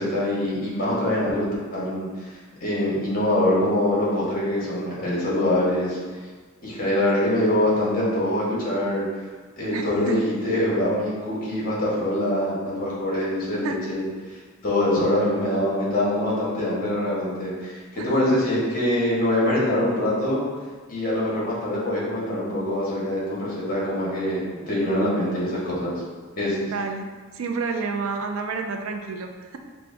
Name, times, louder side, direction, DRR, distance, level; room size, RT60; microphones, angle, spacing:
voice 1, 0.0-1.5 1.7-2.3 2.6-6.0 6.6-9.0 9.6-14.0 14.3-20.4 20.9-26.0 26.4-26.7, left 1 dB, 45° left, -6 dB, 1.3 m, -24 dB
voice 2, 9.7-10.2 13.6-13.8 18.0-18.4 26.7-27.1 27.3-29.6, right 4 dB, 75° right, 4 dB, 0.4 m, -30 dB
5.5 x 2.1 x 2.6 m, 1.4 s
head